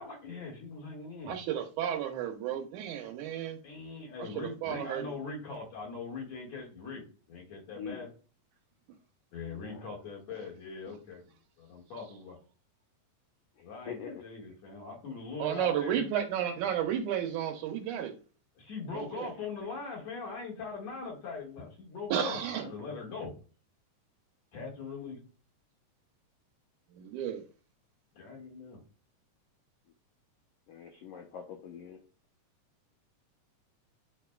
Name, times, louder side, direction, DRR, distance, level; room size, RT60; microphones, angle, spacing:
voice 1, 0.0-1.3 3.6-7.0 7.3-8.1 9.3-11.2 11.6-12.4 13.6-16.1 18.6-23.3 24.5-25.2 28.2-28.8, left 4 dB, 55° left, 2.9 m, -41 dB
voice 2, 1.3-3.6 4.2-5.2 15.4-18.1 18.9-19.3 22.1-22.7 27.0-27.4, right 9 dB, 75° right, 2.1 m, -33 dB
voice 3, 9.5-9.8 13.9-14.1 30.7-32.0, left 7 dB, 75° left, 1.5 m, -43 dB
10.0 x 4.1 x 2.3 m
omnidirectional pair, 3.8 m